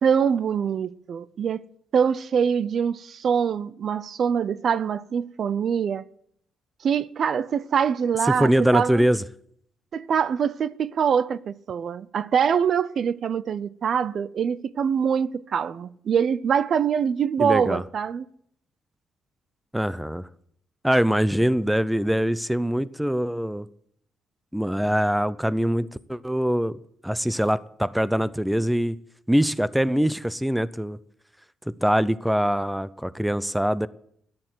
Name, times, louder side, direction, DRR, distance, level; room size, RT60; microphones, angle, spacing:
voice 1, 0.0-1.6 1.9-6.0 6.8-9.0 9.9-18.3, right 7 dB, 55° right, 0.6 m, -24 dB
voice 2, 8.3-9.2 17.4-17.8 19.7-20.3 20.8-23.7 24.5-29.0 29.3-31.0 31.8-33.9, equal, 5° right, 0.6 m, -23 dB
14.0 x 11.5 x 7.8 m
cardioid pair, 90°, 0 cm